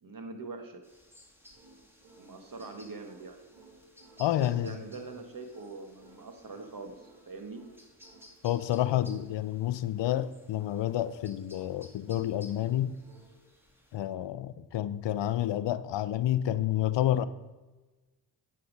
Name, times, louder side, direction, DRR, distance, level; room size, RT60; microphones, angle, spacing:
voice 1, 0.0-0.8 2.2-3.4 4.4-7.6, right 3 dB, 50° right, 1.6 m, -43 dB
sound 1, 0.8-14.0, equal, 5° right, 2.1 m, -58 dB
sound 2, 1.5-13.4, right 3 dB, 85° right, 1.4 m, -58 dB
voice 2, 4.2-4.8 8.4-13.0 13.9-17.3, left 12 dB, 80° left, 0.6 m, -29 dB
9.4 x 5.9 x 5.1 m
supercardioid pair, 45°, 43 cm